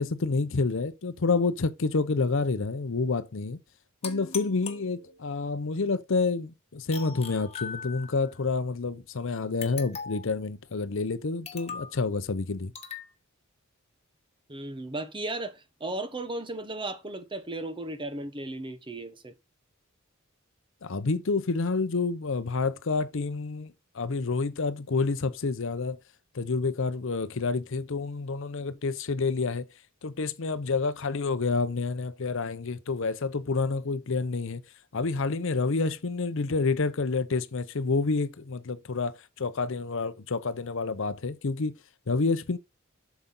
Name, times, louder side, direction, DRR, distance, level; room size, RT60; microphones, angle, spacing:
voice 1, 0.0-3.6 4.0-12.7 20.8-26.0 26.3-29.7 30.0-34.6 34.9-41.7 42.1-42.6, left 4 dB, 65° left, 0.7 m, -28 dB
sound 1, 4.0-5.4 6.9-8.3 9.6-10.4 11.4-12.0 12.7-13.1, left 6 dB, 30° left, 1.4 m, -40 dB
voice 2, 14.5-19.3, right 2 dB, 25° right, 1.0 m, -35 dB
7.8 x 5.8 x 3.7 m
head